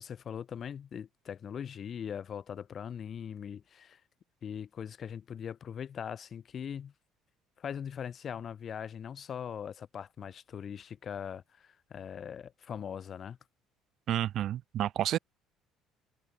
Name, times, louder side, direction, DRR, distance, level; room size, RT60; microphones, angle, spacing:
voice 1, 0.0-4.0 4.4-6.9 7.6-13.4, left 8 dB, 45° left, 3.6 m, -41 dB
voice 2, 14.1-15.2, right 12 dB, 60° right, 1.4 m, -30 dB
cardioid pair, 100°, 0 cm